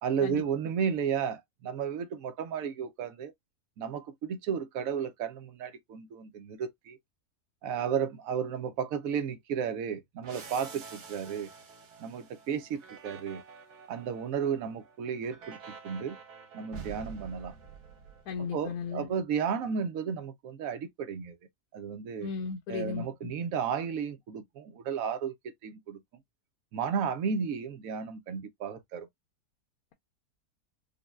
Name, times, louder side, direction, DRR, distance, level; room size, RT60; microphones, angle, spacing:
voice 1, 0.0-3.3 3.8-7.0 7.6-11.5 12.0-13.4 13.9-16.2 16.5-17.5 18.5-21.4 21.7-22.3 22.7-25.3 25.6-26.0 26.7-29.1, right 7 dB, 65° right, 1.0 m, -33 dB
sound 1, 10.2-18.7, right 6 dB, 80° right, 1.6 m, -48 dB
voice 2, 18.3-19.1 22.2-23.3, left 6 dB, 75° left, 1.1 m, -35 dB
5.3 x 2.2 x 2.3 m
omnidirectional pair, 1.7 m